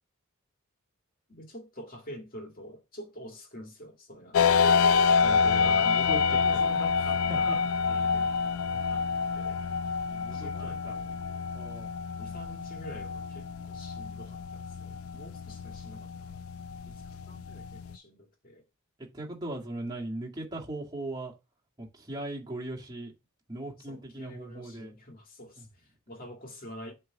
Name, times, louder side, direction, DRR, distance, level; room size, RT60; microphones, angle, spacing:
voice 1, 1.3-4.5 5.5-9.1 9.4-9.6 10.3-11.3 12.2-16.5 16.9-18.6 23.9-26.9, equal, 40° left, 2.1 m, -46 dB
sound 1, 4.3-18.0, left 5 dB, 70° left, 0.4 m, -27 dB
voice 2, 5.2-6.2 6.5-6.6 7.3-7.6 8.7-8.9 10.1-10.9 11.5-11.9 19.0-21.3 21.8-23.1 23.5-24.9 25.6-25.7, right 1 dB, 20° right, 2.0 m, -39 dB
7.8 x 3.4 x 4.7 m
head